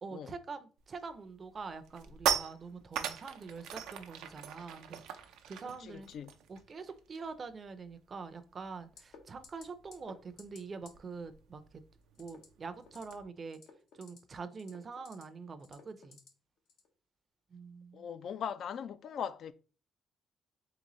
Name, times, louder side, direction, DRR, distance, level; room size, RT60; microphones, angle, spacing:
voice 1, 0.0-6.1 6.5-11.6 12.2-13.6 14.0-16.2 17.5-18.1, right 4 dB, 40° right, 0.5 m, -45 dB
sound 1, 0.9-1.1 1.5-7.4 7.7-7.9 8.2-13.2, right 9 dB, 90° right, 0.4 m, -40 dB
voice 2, 5.8-6.3 17.9-19.5, left 8 dB, 60° left, 0.3 m, -40 dB
sound 2, 9.0-9.2 9.4-9.7 9.9-10.1 10.4-10.6 10.9-11.0 12.2-12.5 12.8-13.1 13.5-14.2 14.6-15.2 15.6-16.3 16.7-16.9, left 6 dB, 85° left, 1.0 m, -54 dB
3.9 x 3.3 x 3.0 m
cardioid pair, 90°, 0 cm